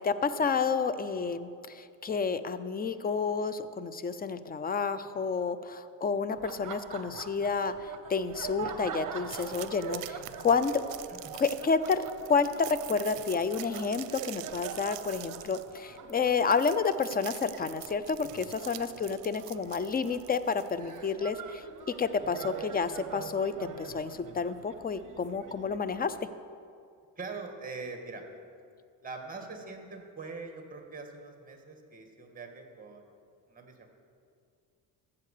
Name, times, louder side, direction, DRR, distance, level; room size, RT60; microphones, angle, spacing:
voice 1, 0.0-10.8 11.4-21.6 22.0-26.1, left 5 dB, 20° left, 14 dB, 0.5 m, -30 dB
Laughter, 6.3-26.2, right 7 dB, 45° right, 1.0 m, -44 dB
sound 1, 9.2-21.0, right 17 dB, 70° right, 0.7 m, -45 dB
voice 2, 27.2-28.2 29.0-33.1 33.5-33.9, right 4 dB, 20° right, 3 dB, 2.0 m, -43 dB
13.5 x 8.3 x 6.7 m, 2.3 s
cardioid pair, 105°, 44 cm